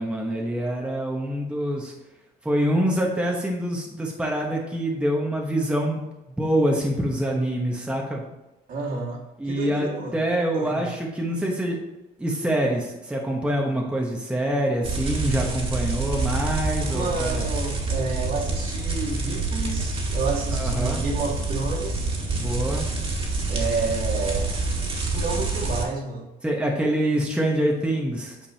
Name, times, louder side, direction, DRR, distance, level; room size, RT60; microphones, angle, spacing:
voice 1, 0.0-1.9 2.4-6.0 6.4-8.2 9.4-11.8 12.2-17.5 20.5-21.0 22.3-22.9 26.4-28.5, right 1 dB, 5° right, -1 dB, 1.1 m, -25 dB
voice 2, 8.7-10.3 10.5-10.9 16.8-22.2 23.5-24.6 25.0-26.3, right 3 dB, 55° right, -2 dB, 2.0 m, -30 dB
sound 1, 14.8-25.8, right 3 dB, 35° right, 1.8 m, -27 dB
8.7 x 5.2 x 2.8 m, 1.0 s
cardioid pair, 110°, 17 cm